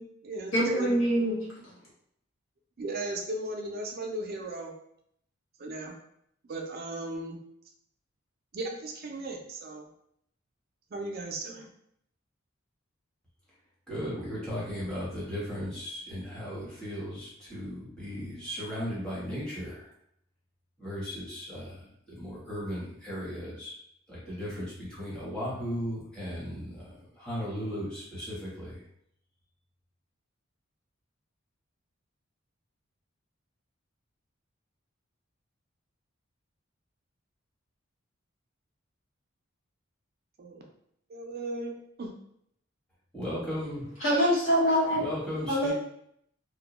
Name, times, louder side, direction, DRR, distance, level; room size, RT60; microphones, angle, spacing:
voice 1, 0.0-0.9 2.8-4.7 5.6-5.9 6.5-7.4 8.5-9.9 10.9-11.7 40.4-40.6 41.1-42.1, right 2 dB, 50° right, 1 dB, 0.4 m, -36 dB
voice 2, 0.5-1.4 44.0-45.1 45.5-45.7, equal, 85° left, -7 dB, 1.2 m, -24 dB
voice 3, 13.9-19.9 20.8-23.7 24.1-28.8 43.1-43.8 44.9-45.7, equal, 5° left, -9 dB, 1.0 m, -36 dB
2.2 x 2.1 x 2.9 m, 0.72 s
head